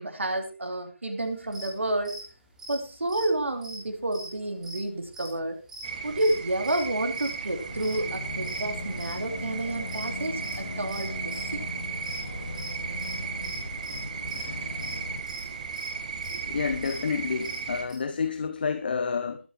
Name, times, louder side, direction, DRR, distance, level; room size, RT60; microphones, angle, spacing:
voice 1, 0.0-2.2 2.7-5.6 6.0-11.6 16.3-16.4, right 1 dB, 75° right, 5 dB, 3.1 m, -30 dB
sound 1, 1.4-1.7 2.0-2.2 2.5-4.3 4.6-4.8 5.1-5.4 5.7-6.3 6.6-6.8 7.1-8.0 8.4-9.2 9.5-11.6 11.9-12.2 12.5-17.9, right 1 dB, 5° right, 3.0 m, -42 dB
sound 2, 5.8-17.9, right 5 dB, 35° right, 1.9 m, -36 dB
sound 3, 7.7-15.2, left 3 dB, 75° left, 1.0 m, -38 dB
voice 2, 16.5-19.4, left 5 dB, 50° left, 8 dB, 1.1 m, -29 dB
21.5 x 9.6 x 3.1 m, 0.31 s
figure-of-eight pair, 155°, 7 cm